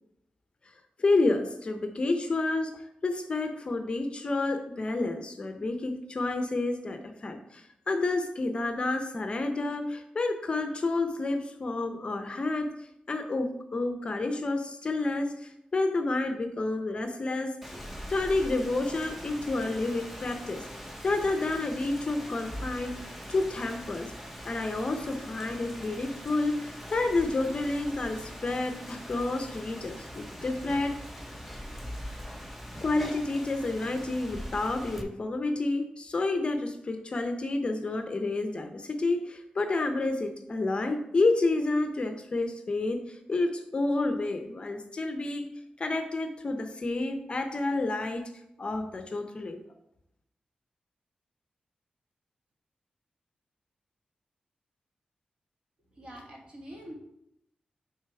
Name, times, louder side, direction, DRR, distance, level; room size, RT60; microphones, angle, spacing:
voice 1, 1.0-12.7 13.1-17.7 18.1-20.7 21.0-24.1 24.5-31.0 32.8-45.5 45.8-48.3 48.6-49.6, left 2 dB, 40° left, 6 dB, 0.6 m, -30 dB
Rain, 17.6-35.0, equal, 5° right, 0.6 m, -42 dB
voice 2, 55.9-56.9, equal, 40° right, -1 dB, 1.5 m, -45 dB
6.3 x 3.4 x 4.6 m, 0.79 s
wide cardioid pair, 115°, 3 cm